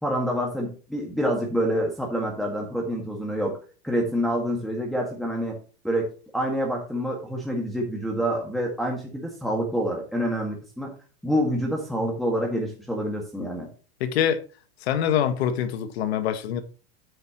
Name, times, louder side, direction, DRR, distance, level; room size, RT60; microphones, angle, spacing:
voice 1, 0.0-3.6 3.8-5.6 5.8-6.1 6.3-10.9 11.2-13.7, equal, ahead, 1.9 m, -27 dB
voice 2, 14.0-14.4 14.8-16.6, left 9 dB, 85° left, 1.6 m, -24 dB
9.6 x 9.0 x 3.1 m
supercardioid pair, 160°, 31 cm